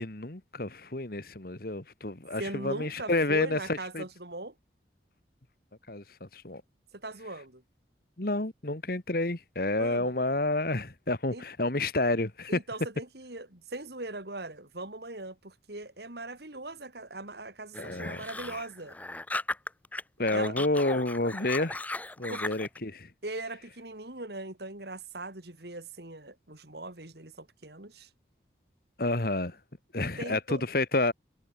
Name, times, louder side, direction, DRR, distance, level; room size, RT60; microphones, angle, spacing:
voice 1, 0.0-4.0 5.9-6.6 8.2-12.6 17.8-18.2 20.2-21.8 22.2-23.1 29.0-29.6 29.9-31.1, left 2 dB, 50° left, 1.7 m, -29 dB
voice 2, 2.4-4.5 6.9-7.6 9.8-10.1 11.3-11.4 12.5-19.0 20.3-20.6 22.3-22.4 23.2-28.1 30.0-30.6, right 2 dB, 60° right, 2.9 m, -40 dB
sound 1, 17.7-20.0 20.3-22.8, left 2 dB, 10° left, 0.5 m, -37 dB
head